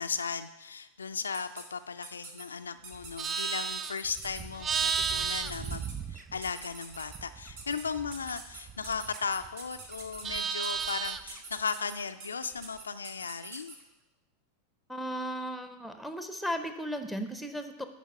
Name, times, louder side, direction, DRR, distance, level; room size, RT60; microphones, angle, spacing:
voice 1, 0.0-13.8, left 5 dB, 75° left, 9 dB, 0.3 m, -36 dB
sound 1, 1.3-1.6 2.0-2.4 2.8-3.4 3.8-4.4 4.9-5.9 6.4-7.2 7.6-7.8 8.1-13.8, right 4 dB, 50° right, 1.4 m, -45 dB
Livestock farm animals working animals, 2.9-6.6 6.9-9.5 9.8-11.4, right 6 dB, 20° right, 0.4 m, -34 dB
voice 2, 14.9-17.8, equal, ahead, 8 dB, 0.7 m, -35 dB
10.0 x 4.6 x 5.4 m, 0.99 s
figure-of-eight pair, 90°, 0 cm